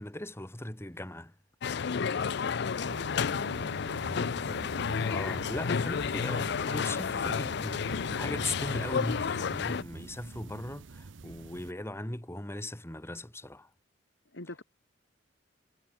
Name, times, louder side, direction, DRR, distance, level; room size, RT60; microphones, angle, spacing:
voice 1, 0.0-1.3 5.0-13.7, left 1 dB, 15° left, 1.9 m, -38 dB
sound 1, 1.6-9.8, left 6 dB, 65° left, 0.5 m, -31 dB
voice 2, 2.0-3.5 14.3-14.6, left 2 dB, 80° left, 2.7 m, -43 dB
sound 2, 2.8-11.7, right 3 dB, 85° right, 0.7 m, -45 dB
head